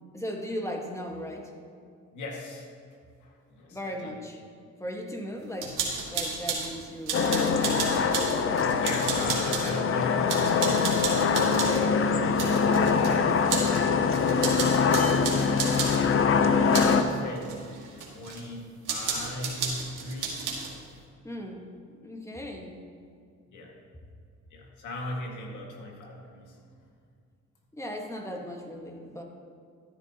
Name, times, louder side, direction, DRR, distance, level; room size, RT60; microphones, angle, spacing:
voice 1, 0.1-1.5 3.7-4.4 4.8-5.8 6.1-7.9 21.2-22.8 27.7-29.2, equal, 10° left, 1 dB, 1.5 m, -37 dB
voice 2, 2.1-2.7 3.2-4.1 8.6-13.3 16.0-16.4 16.9-17.5 18.0-18.6 18.9-20.5 23.5-23.7 24.5-26.6, left 1 dB, 75° left, 0 dB, 2.0 m, -39 dB
sound 1, 5.6-6.7 7.1-9.8 10.3-11.8 12.4-13.1 13.5-13.8 14.1-16.0 16.7-17.0 17.4-18.4 18.9-20.7, right 5 dB, 85° right, 2.2 m, -32 dB
sound 2, 7.1-17.0, left 5 dB, 45° left, 0.7 m, -24 dB
13.0 x 10.5 x 2.9 m, 2.3 s
cardioid pair, 90°, 30 cm